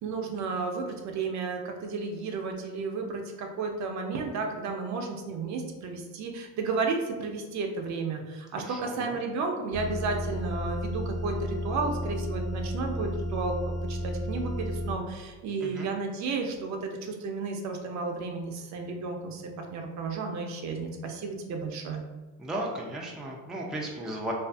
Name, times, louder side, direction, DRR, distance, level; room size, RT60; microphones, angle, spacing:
voice 1, 0.0-22.0, right 4 dB, 60° right, 3 dB, 0.5 m, -33 dB
voice 2, 8.6-9.1 15.6-15.9 22.4-24.3, right 1 dB, ahead, -2 dB, 0.3 m, -35 dB
sound 1, 9.7-14.9, equal, 30° left, 0.8 m, -32 dB
2.5 x 2.4 x 2.3 m, 1.2 s
cardioid pair, 100°, 32 cm